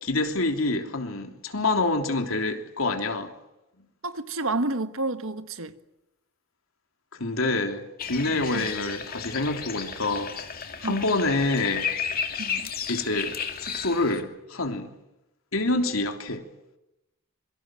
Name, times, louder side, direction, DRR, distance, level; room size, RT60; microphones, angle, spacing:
voice 1, 0.0-3.3 7.2-10.3 10.8-11.9 12.9-14.9 15.5-16.4, left 2 dB, 90° left, 3.3 m, -27 dB
voice 2, 4.0-5.7 8.3-8.7 10.8-11.0 12.4-12.7, right 2 dB, 80° right, 1.6 m, -30 dB
sound 1, 8.0-14.2, left 7 dB, 45° left, 2.7 m, -33 dB
26.0 x 24.0 x 7.7 m
head